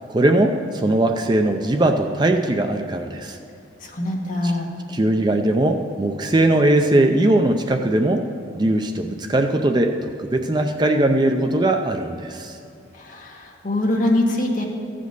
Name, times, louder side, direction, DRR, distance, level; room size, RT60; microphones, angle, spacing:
voice 1, 0.1-3.4 4.4-4.5 4.9-8.3 8.5-12.6, right 1 dB, 25° right, 5 dB, 0.5 m, -20 dB
voice 2, 3.8-4.7 12.9-14.7, left 1 dB, 45° left, 0 dB, 1.4 m, -23 dB
14.5 x 5.1 x 8.0 m, 2.5 s
head